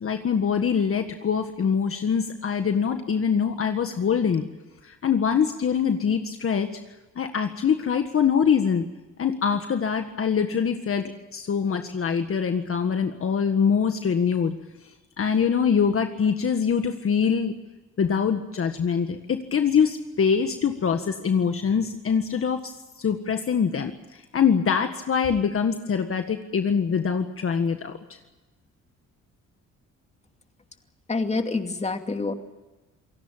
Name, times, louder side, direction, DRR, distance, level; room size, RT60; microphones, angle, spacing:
voice 1, 0.0-4.5 4.8-6.7 7.2-8.9 9.2-14.6 15.2-17.5 18.0-28.2, left 6 dB, 45° left, 6 dB, 1.7 m, -24 dB
voice 2, 31.1-32.3, left 3 dB, 20° left, 6 dB, 2.6 m, -27 dB
28.0 x 17.5 x 7.4 m, 1.1 s
cardioid pair, 90°, 30 cm